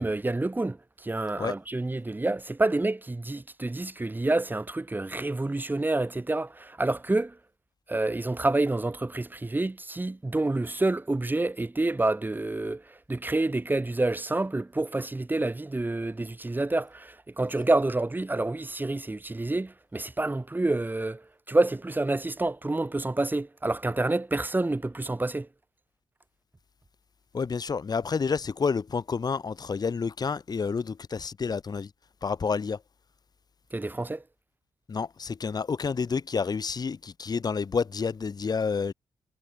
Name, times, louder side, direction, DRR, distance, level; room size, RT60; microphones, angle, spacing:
voice 1, 0.0-7.4 7.9-25.5 33.7-34.2, right 2 dB, 20° right, 6.6 m, -28 dB
voice 2, 27.3-31.9 32.2-32.8 34.9-38.9, left 5 dB, 45° left, 3.7 m, -29 dB
supercardioid pair, 60°, 9 cm